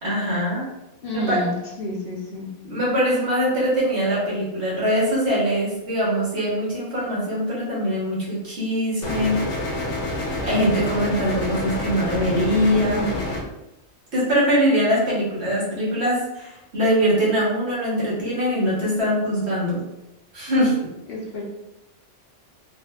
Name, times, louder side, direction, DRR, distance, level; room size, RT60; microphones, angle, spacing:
voice 1, 0.0-0.7 1.1-1.4 2.6-9.4 10.4-13.0 14.1-19.9 20.3-20.8, equal, 65° right, -6 dB, 1.5 m, -22 dB
voice 2, 1.0-2.5 12.8-13.2 21.1-21.4, equal, 60° left, -2 dB, 0.8 m, -29 dB
sound 1, 9.0-13.4, left 1 dB, 80° left, 1.0 m, -28 dB
3.4 x 2.1 x 3.3 m, 0.92 s
omnidirectional pair, 1.2 m